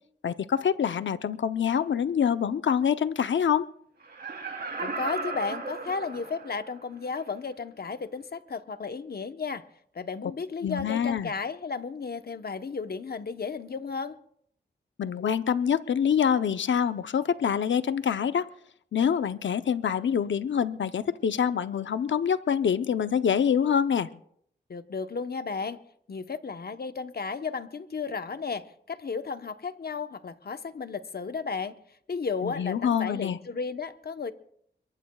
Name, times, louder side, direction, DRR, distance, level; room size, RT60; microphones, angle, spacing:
voice 1, 0.2-3.7 10.6-11.3 15.0-18.5 18.9-24.1 32.4-33.4, left 8 dB, 80° left, 12 dB, 0.7 m, -26 dB
Laughter, 4.0-6.7 7.2-7.3, right 3 dB, 60° right, 3.2 m, -35 dB
voice 2, 4.8-9.6 9.9-14.2 24.7-25.8 26.1-31.8 32.1-34.3, left 5 dB, 55° left, 9 dB, 1.0 m, -34 dB
23.0 x 23.0 x 2.3 m, 0.67 s
cardioid pair, 70°, 19 cm